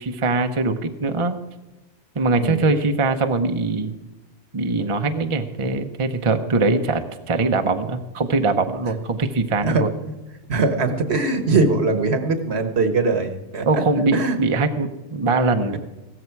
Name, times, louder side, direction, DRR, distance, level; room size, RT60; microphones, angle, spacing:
voice 1, 0.0-1.4 2.1-3.9 4.5-7.0 7.3-9.9 13.7-15.8, right 3 dB, 30° right, 6 dB, 0.8 m, -22 dB
voice 2, 2.4-2.7 9.7-9.8 10.5-13.8 14.1-14.4, right 3 dB, 65° right, 8 dB, 1.5 m, -21 dB
16.0 x 13.5 x 4.6 m, 1.1 s
omnidirectional pair, 1.2 m